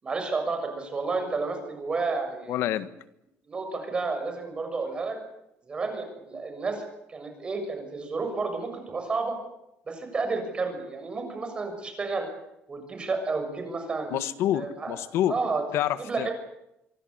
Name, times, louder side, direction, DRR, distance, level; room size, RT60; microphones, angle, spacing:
voice 1, 0.0-2.6 3.5-5.2 5.7-9.4 9.9-12.2 12.7-14.2 14.5-15.0 15.3-15.6 16.0-16.3, right 3 dB, 20° right, 6 dB, 7.0 m, -31 dB
voice 2, 2.5-2.9 14.1-15.4 15.7-16.3, left 12 dB, 75° left, 13 dB, 1.6 m, -27 dB
26.0 x 23.5 x 8.2 m, 0.85 s
cardioid pair, 165°, 4 cm